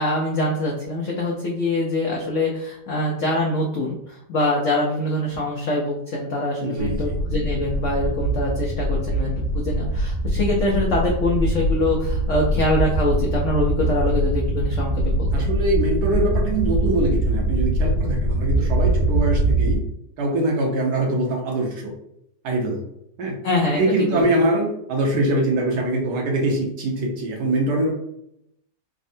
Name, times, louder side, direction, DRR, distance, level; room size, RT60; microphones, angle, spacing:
voice 1, 0.0-15.3 23.4-24.3, left 1 dB, 80° left, -2 dB, 0.6 m, -24 dB
voice 2, 6.6-7.1 15.3-19.8 20.2-21.9 22.4-22.8 23.2-23.4 23.8-27.9, right 1 dB, 65° right, -1 dB, 1.2 m, -23 dB
sound 1, 6.8-19.8, right 1 dB, 65° left, 1.0 m, -23 dB
3.4 x 2.1 x 2.6 m, 0.77 s
omnidirectional pair, 2.0 m